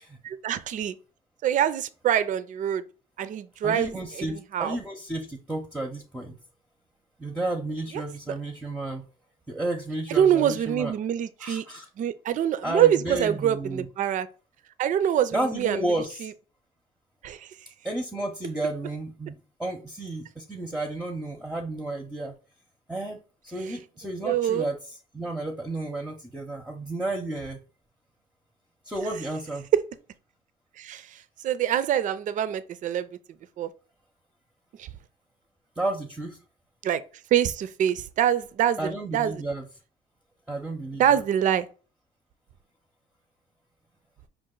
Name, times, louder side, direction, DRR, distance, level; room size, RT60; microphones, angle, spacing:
voice 1, 0.2-1.0 1.4-2.8 3.2-4.8 10.2-11.6 12.0-14.3 14.8-15.9 16.2-16.3 17.2-17.5 24.2-24.7 30.8-33.1 33.6-33.7 34.8-34.9 36.8-37.0 37.3-39.4 41.0-41.7, right 10 dB, 50° right, 0.4 m, -25 dB
voice 2, 3.6-6.3 7.2-9.0 9.5-10.9 11.4-11.9 12.6-13.9 15.3-16.3 17.8-22.3 22.9-23.2 23.4-24.8 25.1-27.6 28.9-29.7 35.8-36.4 38.8-39.7 40.5-41.2, right 2 dB, 5° right, 0.7 m, -32 dB
5.2 x 2.4 x 3.8 m
cardioid pair, 110°, 17 cm